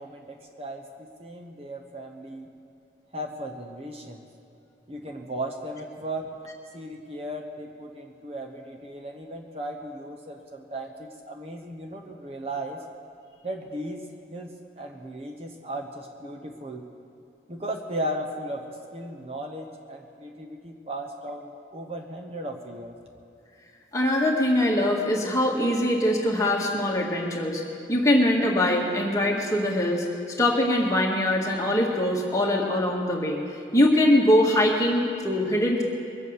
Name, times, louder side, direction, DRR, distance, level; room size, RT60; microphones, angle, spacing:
voice 1, 0.0-2.5 3.1-4.3 4.9-6.4 6.7-12.8 13.4-16.9 17.5-23.0, right 1 dB, 35° right, 2 dB, 1.0 m, -36 dB
voice 2, 23.9-27.6 27.9-30.0 30.4-33.4 33.7-35.8, left 1 dB, 20° left, -1 dB, 1.8 m, -22 dB
22.5 x 8.2 x 6.4 m, 2.8 s
head